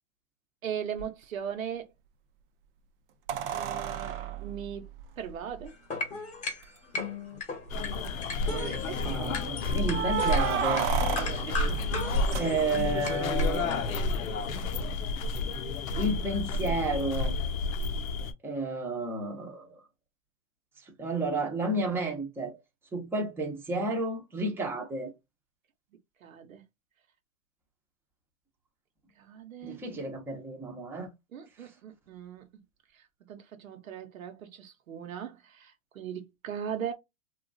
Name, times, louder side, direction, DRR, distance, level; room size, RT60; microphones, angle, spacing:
voice 1, 0.6-1.9 3.5-4.9 5.2-5.7 8.5-9.0 11.4-11.6 26.2-26.6 29.2-29.8 31.3-32.5 33.3-36.9, right 8 dB, 85° right, 0.9 m, -39 dB
sound 1, 1.0-1.1 3.3-5.7 6.6-6.7 7.0-7.1 7.7-8.2 9.9-13.0 15.5-15.6, right 9 dB, 45° right, 0.5 m, -33 dB
sound 2, 5.7-13.8, left 4 dB, 20° left, 1.0 m, -37 dB
sound 3, 7.7-18.3, left 3 dB, 85° left, 0.7 m, -31 dB
voice 2, 9.0-11.5 12.4-14.0 14.5-14.6 16.0-17.3 18.4-19.8 21.0-22.6 22.9-25.1 29.6-31.1, right 2 dB, 5° right, 0.7 m, -32 dB
2.9 x 2.4 x 2.5 m
hypercardioid pair, 125°, 40 cm